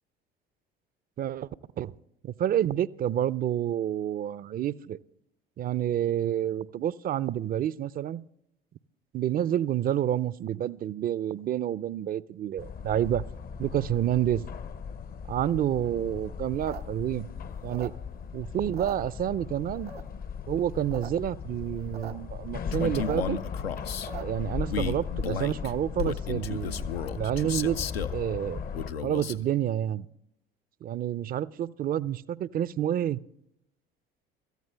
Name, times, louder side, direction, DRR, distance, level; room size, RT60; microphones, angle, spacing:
voice 1, 1.2-1.5 1.8-1.9 2.2-5.0 5.6-8.2 9.1-13.2 13.6-14.5 15.3-17.3 17.6-17.9 18.3-19.9 20.5-23.4 24.1-26.9 27.2-27.8 28.1-28.6 29.0-30.1 30.8-33.2, right 11 dB, 30° right, 0.4 m, -29 dB
sound 1, 12.6-28.9, left 6 dB, 30° left, 0.5 m, -37 dB
sound 2, 16.5-18.3 18.6-19.5 19.9-20.3 20.7-21.1 21.3-21.4 21.6-22.1 22.5-24.5, right 7 dB, 90° right, 0.6 m, -42 dB
Male speech man speaking, 22.7-24.1 24.7-28.2 28.7-29.4, left 6 dB, 90° left, 0.5 m, -34 dB
25.5 x 13.5 x 2.2 m
figure-of-eight pair, 55°, 30 cm